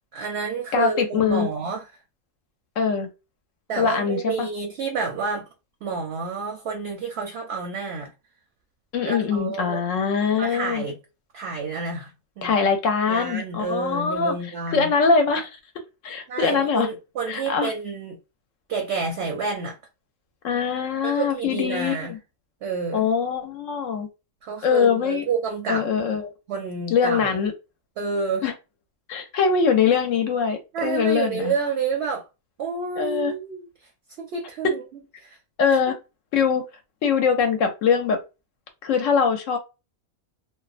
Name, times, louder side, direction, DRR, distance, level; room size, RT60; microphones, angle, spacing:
voice 1, 0.1-1.8 3.7-5.4 5.8-8.1 9.0-9.8 10.4-11.0 11.3-12.5 13.1-14.9 16.3-18.2 18.7-19.8 21.0-22.1 22.6-23.0 24.4-25.9 26.5-27.4 28.0-28.4 30.7-32.2 32.6-33.7 34.2-35.4, right 5 dB, 65° right, 0.7 m, -29 dB
voice 2, 0.7-1.5 2.8-3.1 3.8-4.5 8.9-10.8 12.4-14.3 14.7-15.5 16.0-16.9 17.3-17.7 20.4-22.2 22.9-24.1 24.6-25.2 25.7-26.3 26.9-27.5 28.4-28.5 29.1-31.5 33.0-33.3 34.6-34.7 35.6-35.9 36.3-36.6 37.0-38.2 38.8-39.6, left 6 dB, 70° left, 0.9 m, -22 dB
2.5 x 2.1 x 2.4 m
omnidirectional pair, 1.5 m